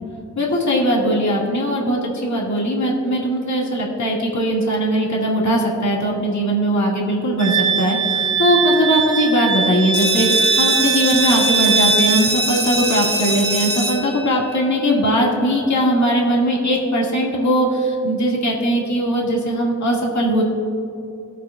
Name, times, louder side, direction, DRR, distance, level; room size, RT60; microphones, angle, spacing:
voice 1, 0.4-20.4, equal, 65° left, -3 dB, 2.1 m, -19 dB
Wind instrument woodwind instrument, 7.4-12.3, right 5 dB, 60° right, 0.9 m, -20 dB
sound 1, 9.9-15.4, right 1 dB, 15° left, 2.7 m, -23 dB
19.0 x 8.2 x 2.4 m, 2.6 s
cardioid pair, 55°, 31 cm